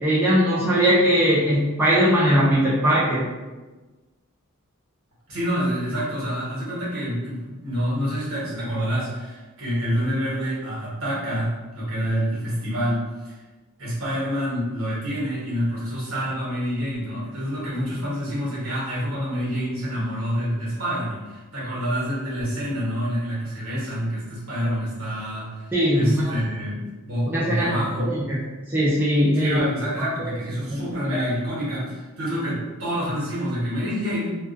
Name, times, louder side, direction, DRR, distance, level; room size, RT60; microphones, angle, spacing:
voice 1, 0.0-3.3 25.7-26.4 27.3-27.7 28.0-28.4 28.7-29.6 30.0-30.3 30.7-31.2, equal, 10° right, -9 dB, 0.4 m, -20 dB
voice 2, 5.3-13.4 13.8-28.1 29.3-34.3, equal, 65° right, -7 dB, 1.0 m, -27 dB
2.3 x 2.3 x 2.4 m, 1.2 s
head